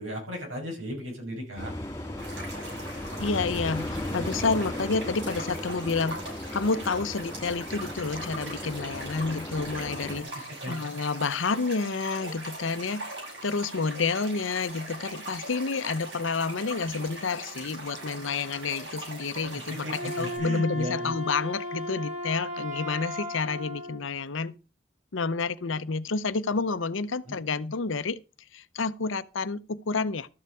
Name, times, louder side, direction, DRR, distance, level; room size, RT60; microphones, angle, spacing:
voice 1, 0.0-1.7 10.3-10.7 19.7-21.1 27.2-27.4, equal, 90° right, 6.2 m, -36 dB
sound 1, 1.6-10.2, left 1 dB, 15° left, 2.9 m, -36 dB
sound 2, 2.2-20.4, right 1 dB, 70° right, 7.4 m, -41 dB
voice 2, 3.2-6.2 6.5-13.0 13.4-24.5 25.1-28.2 28.5-30.3, left 4 dB, 80° left, 0.7 m, -29 dB
Wind instrument woodwind instrument, 19.9-24.0, equal, 40° right, 2.0 m, -35 dB
13.0 x 6.8 x 4.8 m
head